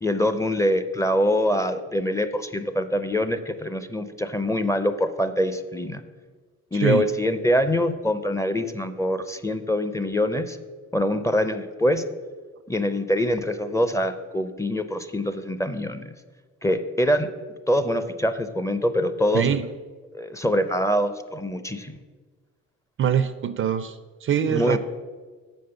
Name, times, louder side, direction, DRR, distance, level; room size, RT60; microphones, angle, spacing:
voice 1, 0.0-6.0 6.7-10.6 10.9-12.0 12.7-16.0 16.6-17.3 17.7-19.5 20.1-22.0 24.5-24.8, left 1 dB, 10° left, 11 dB, 0.5 m, -24 dB
voice 2, 19.3-19.7 23.0-24.8, right 8 dB, 45° right, 13 dB, 0.4 m, -24 dB
7.3 x 5.3 x 6.9 m, 1.4 s
cardioid pair, 90°, 30 cm